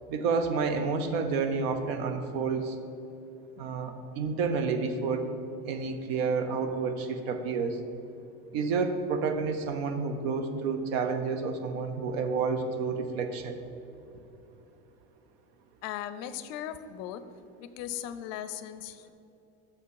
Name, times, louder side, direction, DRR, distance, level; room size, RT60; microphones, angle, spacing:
voice 1, 0.1-2.8 3.6-5.3 5.7-7.8 8.5-13.6, right 4 dB, 80° right, 7 dB, 0.8 m, -30 dB
voice 2, 15.8-17.2 17.6-19.1, left 10 dB, 55° left, 12 dB, 0.5 m, -38 dB
6.7 x 5.7 x 4.7 m, 2.9 s
supercardioid pair, 125°, 31 cm